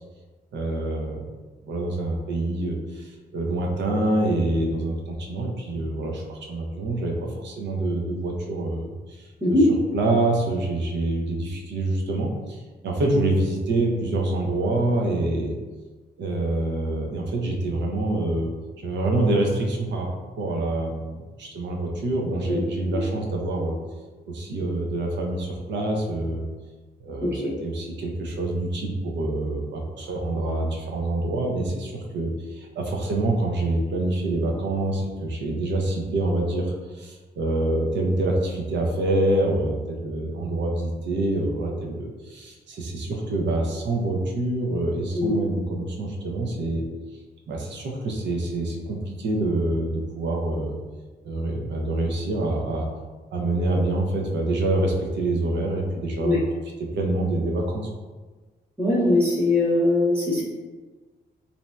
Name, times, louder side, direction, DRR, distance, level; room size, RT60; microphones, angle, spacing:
voice 1, 0.5-1.2 1.6-7.1 7.4-9.3 9.9-12.6 12.8-15.5 16.2-18.5 18.8-20.1 20.4-23.8 24.3-26.4 27.0-46.8 47.5-50.7 51.2-52.9 53.3-56.4 57.0-57.9, right 2 dB, 80° right, 0 dB, 0.6 m, -26 dB
voice 2, 27.2-27.5 45.1-45.3 56.2-56.4 58.8-60.4, left 2 dB, 15° right, -8 dB, 0.7 m, -21 dB
3.0 x 2.6 x 2.2 m, 1.3 s
wide cardioid pair, 145°, 18 cm